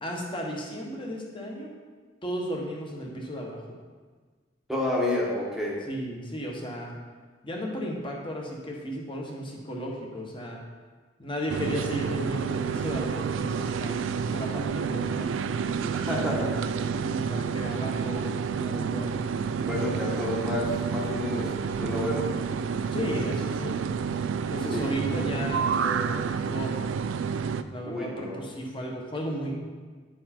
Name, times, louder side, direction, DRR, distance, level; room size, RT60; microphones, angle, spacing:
voice 1, 0.0-1.7 2.2-3.6 5.8-6.9 7.4-10.6 11.2-14.0 14.3-15.4 17.1-19.2 22.9-23.8 24.5-26.8 27.7-29.5, equal, 25° left, -1 dB, 1.3 m, -34 dB
voice 2, 4.7-5.8 15.9-16.7 19.6-21.5 21.8-22.2 24.7-24.9 27.8-28.4, left 1 dB, ahead, -5 dB, 1.2 m, -30 dB
sound 1, 11.5-27.6, right 6 dB, 85° right, 0.4 m, -29 dB
10.0 x 4.8 x 4.3 m, 1.4 s
head